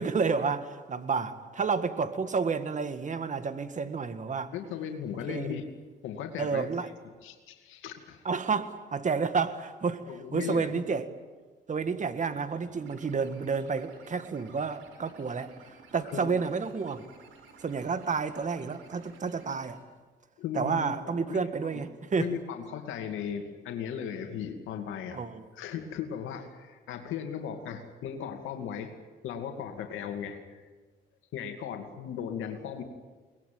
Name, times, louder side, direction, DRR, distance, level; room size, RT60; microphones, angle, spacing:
voice 1, 0.0-4.5 5.3-5.6 6.4-6.9 8.2-10.0 10.3-11.1 11.7-15.5 15.9-17.0 17.6-19.8 20.5-22.3 25.1-25.4, right 5 dB, 40° right, 10 dB, 1.8 m, -30 dB
voice 2, 4.5-5.6 6.0-6.7 7.2-8.2 10.1-10.8 16.1-16.4 20.4-21.8 22.2-25.2 25.5-28.9 29.2-30.6 31.3-32.8, left 8 dB, 90° left, 4 dB, 2.4 m, -37 dB
sound 1, 11.7-19.7, right 4 dB, 90° right, 4.5 m, -54 dB
23.5 x 20.0 x 9.3 m, 1.4 s
cardioid pair, 90°, 20 cm